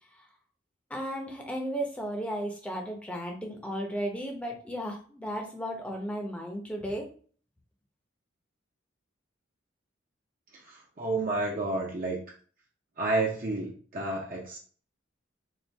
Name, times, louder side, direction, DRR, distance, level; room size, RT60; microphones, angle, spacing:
voice 1, 0.9-7.1, equal, 5° left, 1 dB, 0.7 m, -34 dB
voice 2, 10.6-12.2 13.0-14.6, right 2 dB, 45° right, -3 dB, 0.7 m, -30 dB
4.4 x 2.4 x 3.3 m, 0.43 s
head